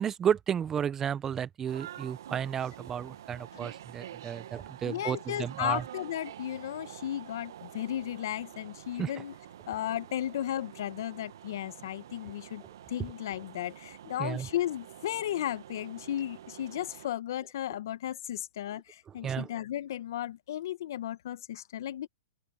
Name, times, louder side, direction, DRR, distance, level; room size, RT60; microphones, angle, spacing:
voice 1, 0.0-5.8 9.0-9.1 14.2-14.5 19.2-19.5, right 8 dB, 20° right, 0.8 m, -32 dB
sound 1, 1.7-17.1, right 11 dB, 70° right, 1.4 m, -48 dB
voice 2, 4.8-9.3 9.7-12.6 12.9-22.1, left 12 dB, 65° left, 1.1 m, -35 dB
open air
hypercardioid pair, 130°, 2 cm